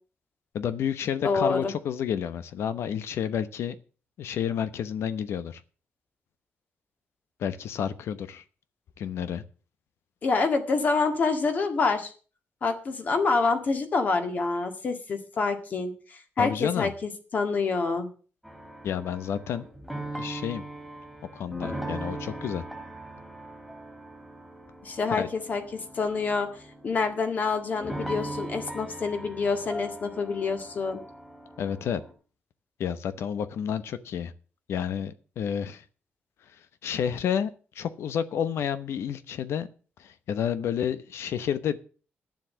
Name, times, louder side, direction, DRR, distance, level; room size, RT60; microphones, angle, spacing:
voice 1, 0.5-3.8 4.2-5.6 7.4-8.4 9.0-9.4 16.4-16.9 18.8-19.7 20.2-20.6 21.3-22.6 25.1-25.3 31.6-32.0 32.8-34.3 34.7-35.8 36.8-39.7 40.0-41.8, left 8 dB, 80° left, 13 dB, 1.0 m, -30 dB
voice 2, 1.2-1.7 10.2-12.1 12.6-18.1 24.8-26.5 26.8-31.0, left 4 dB, 40° left, 6 dB, 1.9 m, -27 dB
sound 1, 18.4-32.1, right 1 dB, 5° left, 2.6 m, -40 dB
10.5 x 7.4 x 7.5 m, 0.38 s
wide cardioid pair, 170°, 4 cm